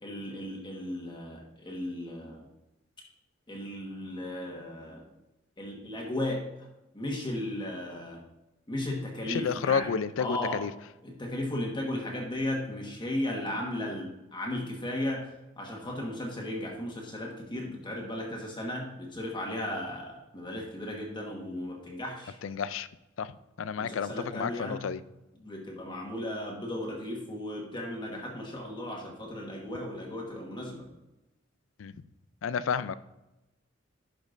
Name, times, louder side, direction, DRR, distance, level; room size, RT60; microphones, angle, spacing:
voice 1, 0.0-2.5 3.5-5.1 5.6-6.7 6.9-8.2 8.7-10.6 11.0-15.3 15.6-22.4 23.8-24.8 25.4-30.9, left 1 dB, 25° left, -1 dB, 1.4 m, -35 dB
voice 2, 9.3-10.7 22.4-22.9 23.2-23.3 23.6-25.0 31.8-31.9 32.4-33.0, left 6 dB, 75° left, 15 dB, 0.4 m, -30 dB
11.5 x 5.2 x 2.6 m, 0.98 s
head